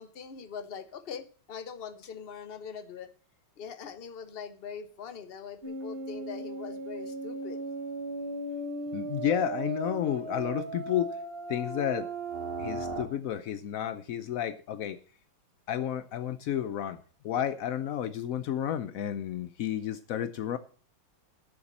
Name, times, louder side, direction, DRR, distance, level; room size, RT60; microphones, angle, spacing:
voice 1, 0.0-3.1 3.6-7.6, left 6 dB, 45° left, 0.8 m, -42 dB
sound 1, 5.6-13.1, right 3 dB, 30° right, 1.6 m, -37 dB
voice 2, 8.9-11.2 11.5-12.1 12.6-15.0 15.7-20.6, left 10 dB, 85° left, 0.7 m, -31 dB
8.4 x 7.1 x 7.4 m
omnidirectional pair, 2.2 m